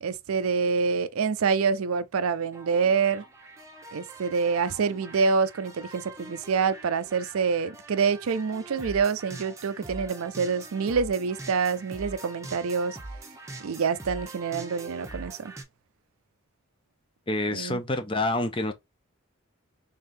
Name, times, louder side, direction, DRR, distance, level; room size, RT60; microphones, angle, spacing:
voice 1, 0.0-3.2 3.9-13.0 13.6-15.5 17.5-17.8, right 5 dB, 80° right, 0.5 m, -26 dB
sound 1, 2.5-15.6, right 2 dB, 15° right, 0.8 m, -43 dB
voice 2, 17.3-18.7, left 2 dB, 25° left, 0.6 m, -27 dB
3.6 x 3.5 x 2.6 m
head